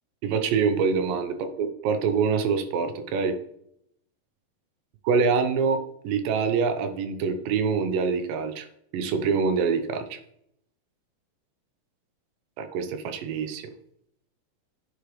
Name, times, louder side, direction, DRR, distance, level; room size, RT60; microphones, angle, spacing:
voice 1, 0.2-3.4 5.1-8.7 8.9-10.2 12.6-13.7, right 5 dB, 75° right, 8 dB, 2.4 m, -25 dB
8.1 x 6.6 x 3.2 m, 0.71 s
omnidirectional pair, 4.3 m